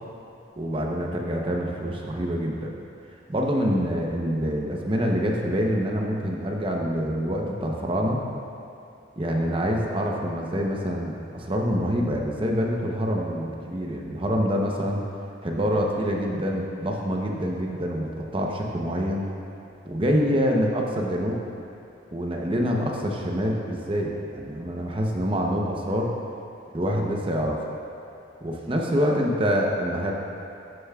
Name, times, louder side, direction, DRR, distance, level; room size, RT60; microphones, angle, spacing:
voice 1, 0.6-2.7 3.3-8.2 9.2-15.0 15.4-19.2 19.9-21.4 22.1-26.1 26.7-27.6 28.4-30.1, equal, 30° right, 0 dB, 0.8 m, -26 dB
11.0 x 8.4 x 2.4 m, 2.8 s
head